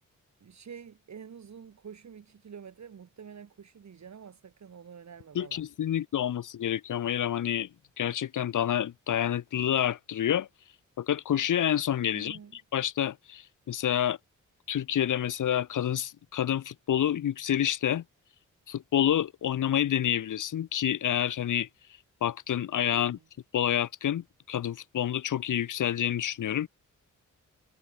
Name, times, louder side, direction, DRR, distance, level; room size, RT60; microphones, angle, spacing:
voice 1, 0.4-5.6 12.1-12.6 22.8-23.3, right 7 dB, 60° right, 2.4 m, -48 dB
voice 2, 5.3-7.7 8.0-10.5 11.0-14.2 14.7-18.0 18.7-21.7 22.2-23.2 23.5-26.7, left 10 dB, 75° left, 1.0 m, -28 dB
cardioid pair, 70°, 31 cm